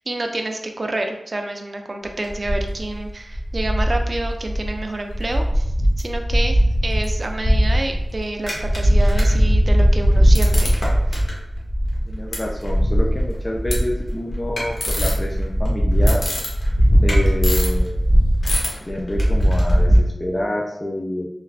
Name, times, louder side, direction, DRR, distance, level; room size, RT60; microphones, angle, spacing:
voice 1, 0.0-5.7 6.0-10.7, right 2 dB, 45° right, 4 dB, 0.4 m, -28 dB
sound 1, 2.2-3.1 3.3-4.8 5.1-20.0, equal, 65° left, 0.8 m, -19 dB
voice 2, 12.1-16.3 17.0-18.5 18.9-21.4, left 1 dB, 20° left, -2 dB, 0.4 m, -28 dB
3.3 x 2.3 x 2.4 m, 0.83 s
wide cardioid pair, 75°, 0 cm